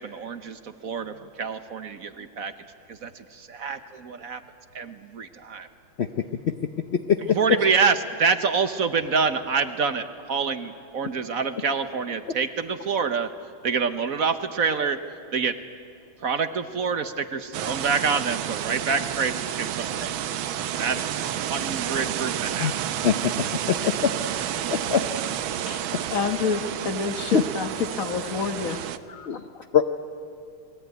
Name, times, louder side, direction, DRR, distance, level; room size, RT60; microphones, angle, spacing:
voice 1, 0.0-2.5 2.9-4.4 4.7-5.7 7.2-13.3 13.6-15.0 15.3-15.6 16.2-20.2 20.8-22.7, right 5 dB, 50° right, 10 dB, 1.2 m, -27 dB
voice 2, 6.0-6.5 7.1-7.2 22.6-22.7 23.0-23.1 23.7-23.9 24.7-25.0 27.3-27.4 29.3-29.4 29.7-29.8, left 8 dB, 65° left, 7 dB, 0.6 m, -22 dB
sound 1, 17.5-29.0, right 10 dB, 75° right, 1.7 m, -30 dB
voice 3, 26.1-28.8 29.1-29.7, left 5 dB, 45° left, 8 dB, 1.6 m, -28 dB
28.5 x 21.0 x 9.3 m, 2.5 s
omnidirectional pair, 2.2 m